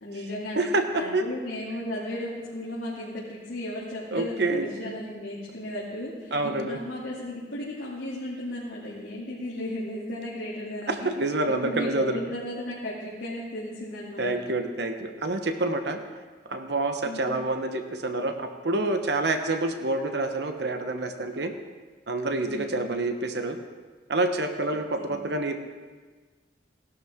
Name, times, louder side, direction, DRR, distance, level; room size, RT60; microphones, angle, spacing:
voice 1, 0.0-11.1 11.6-14.3 17.0-17.4 22.5-22.8 24.7-25.2, left 1 dB, 85° left, -8 dB, 2.6 m, -35 dB
voice 2, 0.6-1.2 4.1-4.9 6.3-6.8 10.9-12.2 14.2-16.0 16.4-21.5 22.1-23.6 24.1-25.6, right 2 dB, 60° right, 6 dB, 1.0 m, -27 dB
16.5 x 12.0 x 3.7 m, 1.4 s
head